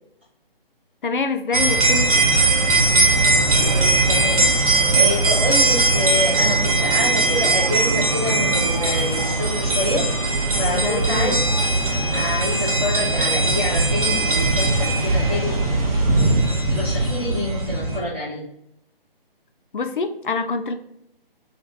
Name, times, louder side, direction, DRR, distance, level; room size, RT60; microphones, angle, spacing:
voice 1, 1.0-2.2 10.7-11.4 19.7-20.7, left 4 dB, 60° left, 8 dB, 0.5 m, -25 dB
sound 1, 1.5-18.0, right 2 dB, 40° right, 0.9 m, -19 dB
voice 2, 3.6-4.5 4.9-10.1 10.6-11.5 12.1-15.6 16.2-16.4 16.7-18.4, left 1 dB, 10° right, -12 dB, 0.5 m, -27 dB
3.3 x 2.9 x 3.9 m, 0.77 s
figure-of-eight pair, 150°, 30 cm